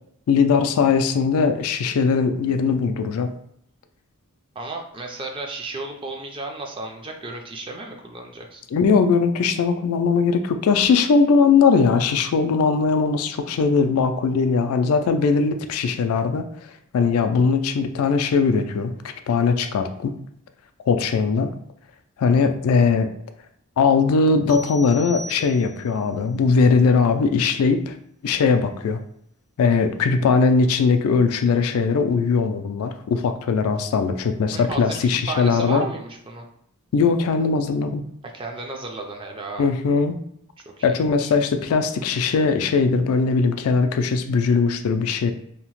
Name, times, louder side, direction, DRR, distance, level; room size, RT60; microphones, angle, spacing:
voice 1, 0.3-3.3 8.7-16.4 16.9-18.9 19.3-20.2 20.9-21.5 22.2-23.1 23.8-27.9 28.2-29.0 29.6-35.9 36.9-38.0 39.6-40.2 40.8-45.3, left 5 dB, 75° left, 7 dB, 0.3 m, -20 dB
voice 2, 4.6-8.6 34.5-35.0 35.3-36.5 38.2-39.7 40.8-41.3, right 3 dB, 25° right, 2 dB, 0.3 m, -33 dB
sound 1, 24.5-26.0, right 1 dB, 80° right, 0.7 m, -39 dB
2.8 x 2.0 x 2.9 m, 0.71 s
head